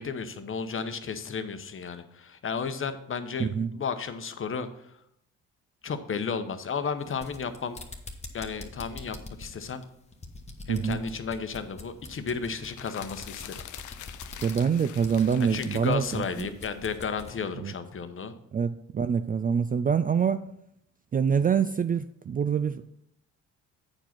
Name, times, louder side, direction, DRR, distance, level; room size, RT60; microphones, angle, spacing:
voice 1, 0.0-3.5 3.7-4.7 5.8-7.8 8.3-9.8 10.7-13.6 15.4-18.3, left 5 dB, 40° left, 0.9 m, -33 dB
voice 2, 3.4-3.7 10.7-11.0 14.4-16.5 17.6-17.7 18.5-20.5 21.1-22.8, right 7 dB, 25° right, 0.3 m, -25 dB
sound 1, 7.0-17.4, left 2 dB, 20° left, 1.3 m, -45 dB
sound 2, 12.6-17.3, left 12 dB, 65° left, 0.6 m, -45 dB
8.9 x 4.7 x 5.8 m
supercardioid pair, 65°, 33 cm